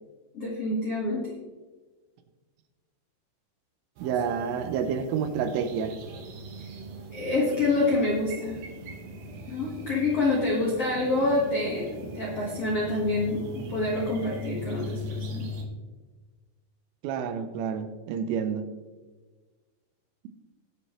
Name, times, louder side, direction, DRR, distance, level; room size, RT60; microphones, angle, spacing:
voice 1, 0.3-1.3 6.6-6.7 7.1-8.6 9.5-15.5, left 2 dB, 70° left, -4 dB, 1.4 m, -27 dB
sound 1, 4.0-15.6, equal, 65° right, 2.4 m, -40 dB
voice 2, 4.0-6.0 17.0-18.7, right 7 dB, 90° right, 9 dB, 3.4 m, -29 dB
19.5 x 6.5 x 3.1 m, 1.3 s
omnidirectional pair, 5.6 m